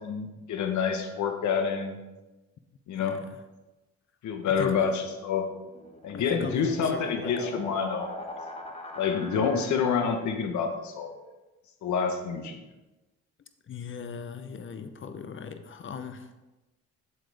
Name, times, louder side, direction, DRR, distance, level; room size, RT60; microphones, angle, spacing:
voice 1, 0.0-1.9 2.9-3.2 4.2-5.5 6.0-8.1 9.0-11.1 11.8-12.6, left 6 dB, 70° left, 6 dB, 1.2 m, -28 dB
voice 2, 2.9-3.4 4.6-4.8 6.1-7.6 13.7-16.4, left 6 dB, 40° left, 10 dB, 0.8 m, -38 dB
sound 1, 5.5-10.3, left 2 dB, 20° left, 1.1 m, -40 dB
7.8 x 7.3 x 3.5 m, 1.1 s
cardioid pair, 90°, 30 cm